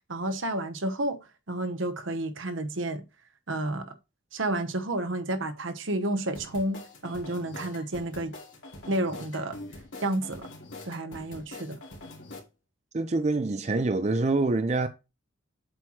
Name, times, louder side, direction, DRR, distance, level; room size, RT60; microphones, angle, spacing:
voice 1, 0.1-1.2 1.5-3.0 3.5-3.9 4.3-8.3 8.9-9.6 10.0-10.5 10.9-11.8, right 1 dB, 80° right, 1.0 m, -30 dB
sound 1, 6.3-12.4, left 2 dB, 75° left, 2.1 m, -44 dB
voice 2, 12.9-14.9, right 3 dB, 35° right, 0.4 m, -25 dB
7.6 x 3.1 x 6.2 m
head